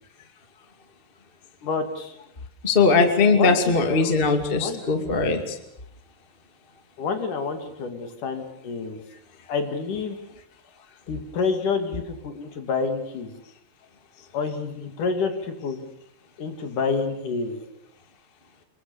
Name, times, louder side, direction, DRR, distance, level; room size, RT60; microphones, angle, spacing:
voice 1, 1.6-2.2 3.3-4.2 4.6-5.2 7.0-9.0 9.5-10.2 11.1-13.3 14.3-15.8 16.4-17.7, left 4 dB, 55° left, 7 dB, 3.6 m, -28 dB
voice 2, 2.6-5.5, left 4 dB, 20° left, 6 dB, 1.8 m, -20 dB
28.0 x 22.5 x 7.0 m, 0.76 s
omnidirectional pair, 4.6 m